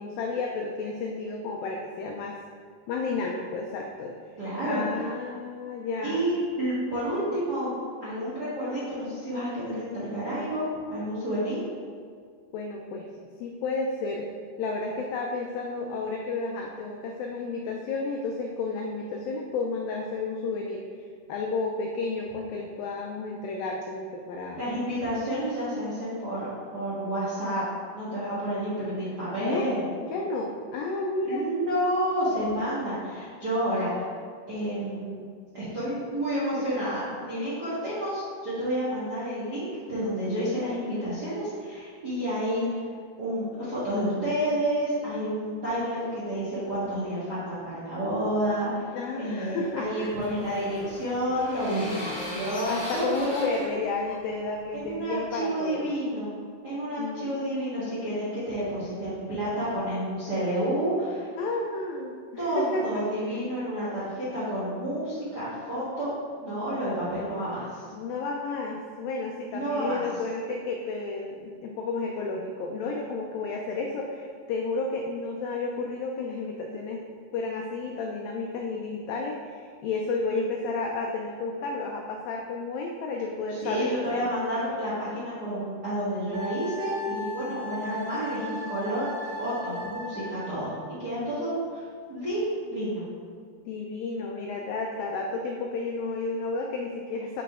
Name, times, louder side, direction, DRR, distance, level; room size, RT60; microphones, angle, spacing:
voice 1, 0.0-2.4 2.9-4.1 4.7-6.3 12.5-13.1 13.4-14.3 14.6-20.9 21.3-24.6 29.4-29.8 30.1-31.5 48.9-50.2 52.6-55.9 57.0-57.5 61.4-63.0 67.9-77.0 77.3-84.3 93.7-97.4, left 3 dB, 85° left, 1 dB, 2.0 m, -32 dB
voice 2, 4.4-4.8 6.0-7.7 8.0-11.6 24.5-26.5 26.7-27.6 27.9-29.8 31.2-34.1 34.5-35.2 35.5-42.9 43.2-53.6 54.7-56.3 56.6-61.3 62.4-66.1 66.4-67.8 69.4-70.0 83.5-91.8 92.1-92.4 92.7-93.0, equal, 85° right, -11 dB, 0.8 m, -30 dB
sound 1, 49.5-55.0, left 1 dB, 50° left, 2.6 m, -39 dB
Wind instrument woodwind instrument, 86.3-90.8, left 1 dB, 65° right, 2.4 m, -38 dB
7.9 x 4.8 x 3.6 m, 2.1 s
omnidirectional pair, 4.6 m